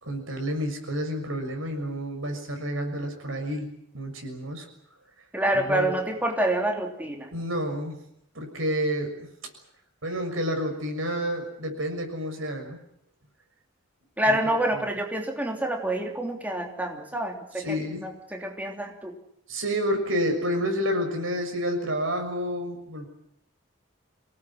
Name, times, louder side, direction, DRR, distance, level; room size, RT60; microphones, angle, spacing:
voice 1, 0.0-3.7 3.9-4.7 5.5-5.9 7.3-8.0 8.3-9.2 10.0-12.8 17.6-18.0 19.5-23.1, equal, 80° right, 4 dB, 6.5 m, -29 dB
voice 2, 5.3-7.3 14.2-19.2, right 1 dB, 10° right, 2 dB, 3.2 m, -27 dB
25.5 x 18.5 x 9.1 m, 0.74 s
head